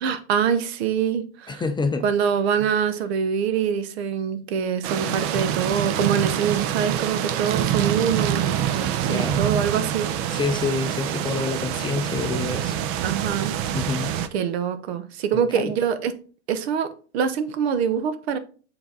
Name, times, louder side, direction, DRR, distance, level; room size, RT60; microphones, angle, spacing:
voice 1, 0.0-1.6 2.0-10.4 13.0-13.6 14.3-16.1 16.5-18.4, right 7 dB, 65° right, 0.9 m, -25 dB
voice 2, 1.5-2.1 2.6-2.7 9.0-9.4 10.3-12.8 13.7-14.2 15.3-15.7, left 4 dB, 15° left, 0.5 m, -27 dB
sound 1, 4.8-14.3, right 10 dB, 40° right, 0.7 m, -26 dB
6.8 x 3.9 x 3.8 m
hypercardioid pair, 105°, 34 cm